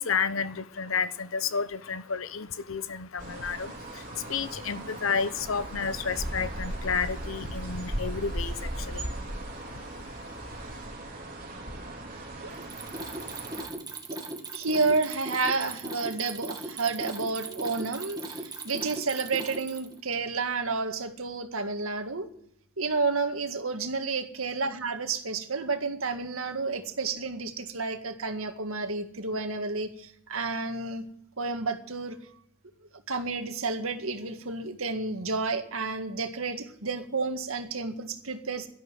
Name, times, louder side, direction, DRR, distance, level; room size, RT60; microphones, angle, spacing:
voice 1, 0.0-10.9, left 6 dB, 75° left, 0.9 m, -32 dB
sound 1, 3.2-13.7, right 1 dB, 40° right, 3.5 m, -37 dB
Mechanisms, 12.5-20.0, right 2 dB, 20° right, 1.9 m, -38 dB
voice 2, 14.5-22.3 22.8-31.0 31.4-32.2 33.1-38.7, right 4 dB, 85° right, 1.9 m, -30 dB
12.0 x 11.5 x 7.6 m
head